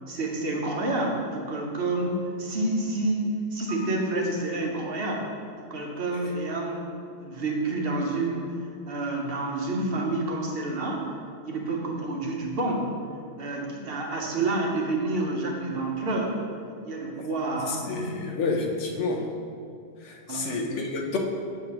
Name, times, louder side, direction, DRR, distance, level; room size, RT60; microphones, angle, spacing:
voice 1, 0.1-5.3 5.6-8.6 8.9-11.0 11.4-12.9 13.4-16.4 16.8-18.6 20.3-20.4, right 2 dB, 55° right, -1 dB, 1.0 m, -29 dB
voice 2, 17.7-19.2 20.0-21.2, left 3 dB, 80° left, 2 dB, 1.0 m, -29 dB
6.6 x 6.5 x 2.9 m, 2.4 s
omnidirectional pair, 1.2 m